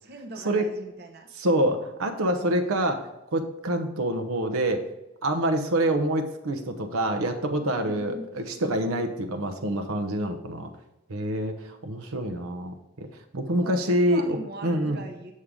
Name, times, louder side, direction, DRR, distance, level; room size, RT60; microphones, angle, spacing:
voice 1, 0.0-1.3 7.8-8.3 13.5-15.3, right 2 dB, 50° right, 4 dB, 0.8 m, -41 dB
voice 2, 1.4-4.9 5.2-10.7 11.1-14.4 14.6-15.0, right 1 dB, 85° right, 5 dB, 0.9 m, -26 dB
8.5 x 6.5 x 3.7 m, 0.95 s
head